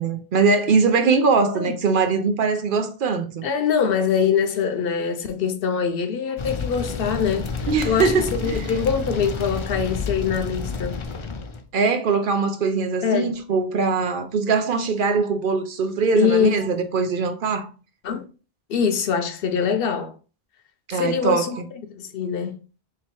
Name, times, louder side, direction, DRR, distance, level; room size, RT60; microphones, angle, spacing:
voice 1, 0.0-3.5 7.7-8.7 11.7-17.7 20.9-21.7, right 4 dB, 60° right, 0.7 m, -22 dB
voice 2, 3.4-7.5 7.8-11.0 13.0-13.4 16.1-16.5 16.8-16.9 18.0-18.3 18.7-20.1 20.9-21.6 21.9-22.6, left 7 dB, 70° left, 0.8 m, -23 dB
sound 1, 6.4-11.6, left 4 dB, 45° left, 0.4 m, -30 dB
3.2 x 2.8 x 4.4 m
omnidirectional pair, 1.0 m